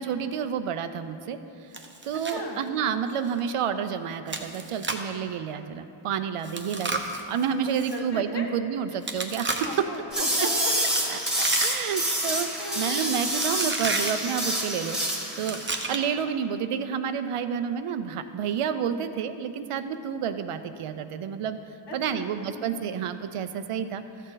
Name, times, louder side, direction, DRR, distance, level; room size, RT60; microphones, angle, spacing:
voice 1, 0.0-1.4 2.0-7.0 7.3-9.9 10.4-10.5 11.1-15.0 15.4-21.6 21.9-24.3, right 7 dB, 85° right, 10 dB, 0.6 m, -30 dB
Chewing mastication, 1.7-2.4 2.7-2.8 3.3-3.4 4.3-5.1 6.4-8.0 9.0-10.0 10.8-12.0 12.3-12.7 13.4-14.2 15.3-16.2, right 3 dB, 25° right, 0.7 m, -33 dB
voice 2, 2.1-2.7 7.9-8.5 9.6-11.6 12.6-13.0 21.9-23.0, left 1 dB, 55° left, 1 dB, 1.3 m, -38 dB
sound 1, 10.1-15.8, right 1 dB, ahead, 1.6 m, -27 dB
13.0 x 6.5 x 3.9 m, 2.7 s
wide cardioid pair, 80°, 50 cm